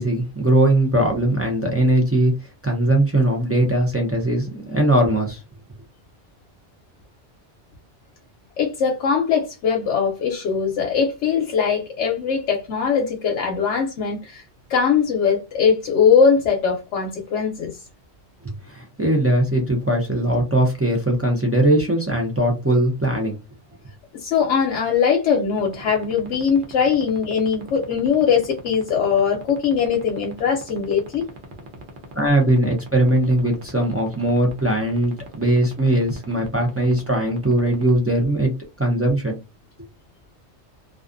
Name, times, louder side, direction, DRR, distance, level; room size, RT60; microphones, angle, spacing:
voice 1, 0.0-5.4 18.4-23.3 32.1-38.5 38.8-39.4, right 1 dB, 20° right, 0.4 m, -20 dB
voice 2, 8.6-14.4 14.7-17.8 24.1-31.3, left 6 dB, 80° left, 0.9 m, -21 dB
sound 1, 25.6-37.9, right 6 dB, 55° right, 0.7 m, -39 dB
2.4 x 2.3 x 2.4 m
omnidirectional pair, 1.2 m